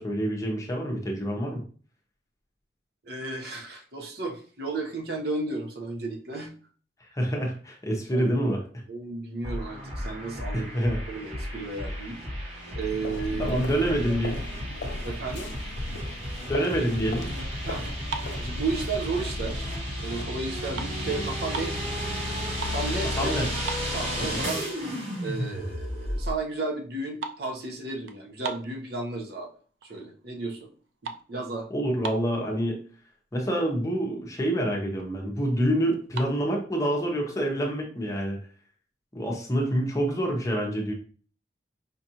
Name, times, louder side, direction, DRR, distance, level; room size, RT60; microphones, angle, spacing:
voice 1, 0.0-1.6 7.0-8.6 10.5-11.0 13.4-14.4 16.5-17.3 21.0-21.1 23.2-23.5 24.2-24.4 31.7-32.8 33.3-38.4 39.1-40.9, equal, 15° left, 0 dB, 0.7 m, -27 dB
voice 2, 3.0-6.5 8.1-8.3 8.9-12.2 12.7-13.6 14.1-14.2 15.0-15.5 17.6-17.9 18.4-19.7 20.0-21.9 22.7-23.4 23.9-24.7 25.2-29.5 29.9-30.7 31.0-31.7, right 3 dB, 55° right, 2 dB, 0.8 m, -33 dB
sound 1, 9.4-26.3, equal, 35° right, 1.1 m, -33 dB
sound 2, 12.8-19.8, left 2 dB, 70° left, 0.4 m, -38 dB
sound 3, 18.1-19.3 19.8-20.1 20.4-21.8 22.3-22.9 23.2-23.3 23.6-24.5 24.9-25.0 25.6-25.7 25.9-26.3 26.5-29.3 29.8-30.2 30.5-32.5 33.2-33.3 33.5-33.7 34.2-34.3 34.5-35.2 35.9-36.3, right 5 dB, 80° right, 0.5 m, -39 dB
5.2 x 2.4 x 2.8 m, 0.42 s
head